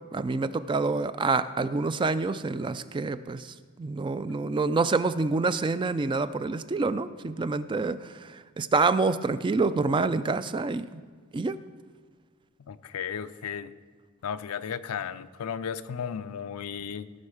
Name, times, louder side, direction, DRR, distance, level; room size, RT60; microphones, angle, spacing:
voice 1, 0.1-8.0 8.3-11.0 11.3-11.6, right 3 dB, 20° right, 0.3 m, -27 dB
voice 2, 12.7-13.7 14.2-17.1, left 7 dB, 90° left, 0.5 m, -34 dB
16.5 x 6.3 x 4.9 m
head